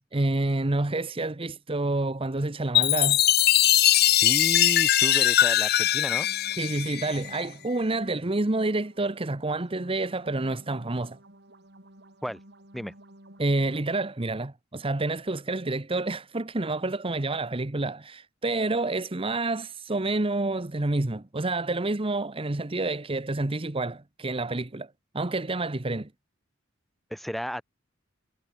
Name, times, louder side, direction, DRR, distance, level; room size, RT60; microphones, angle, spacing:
voice 1, 0.1-3.2 6.6-11.2 13.4-26.1, right 2 dB, 30° right, 1.0 m, -28 dB
Chime, 2.7-7.4, left 12 dB, 50° left, 0.8 m, -21 dB
voice 2, 3.9-6.3 12.2-12.4 12.7-12.9 27.1-27.6, equal, ahead, 2.0 m, -33 dB
sound 1, 5.9-13.8, right 1 dB, 55° right, 6.2 m, -52 dB
head